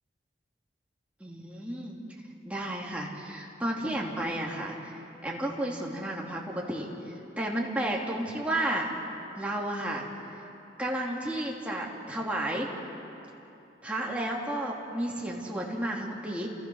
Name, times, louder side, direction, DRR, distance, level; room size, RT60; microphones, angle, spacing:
voice 1, 1.2-2.0 2.4-8.9 9.4-10.0 10.8-12.7 13.8-16.5, right 1 dB, 5° right, -3 dB, 3.2 m, -32 dB
29.0 x 28.5 x 6.5 m, 2.8 s
head